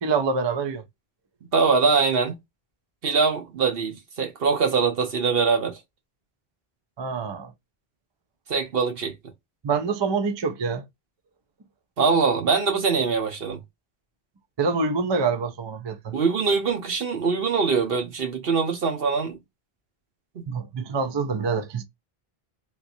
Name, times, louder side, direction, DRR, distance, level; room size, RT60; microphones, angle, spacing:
voice 1, 0.0-0.8 7.0-7.5 9.6-10.9 14.6-16.2 20.5-21.8, right 4 dB, 40° right, 0.4 m, -26 dB
voice 2, 1.5-2.4 3.0-5.8 8.5-9.1 12.0-13.6 16.1-19.4 20.3-20.5, right 5 dB, 70° right, 1.1 m, -23 dB
3.6 x 2.8 x 2.6 m
omnidirectional pair, 1.0 m